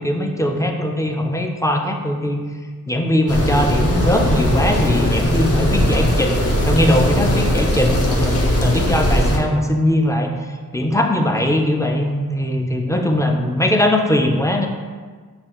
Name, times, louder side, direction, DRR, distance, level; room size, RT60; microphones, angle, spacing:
voice 1, 0.0-2.4 2.9-8.2 8.6-10.3 10.7-14.7, left 1 dB, 10° left, 2 dB, 0.4 m, -20 dB
sound 1, 3.3-9.4, equal, 45° left, 0.8 m, -19 dB
6.8 x 2.3 x 2.9 m, 1.5 s
wide cardioid pair, 75°, 35 cm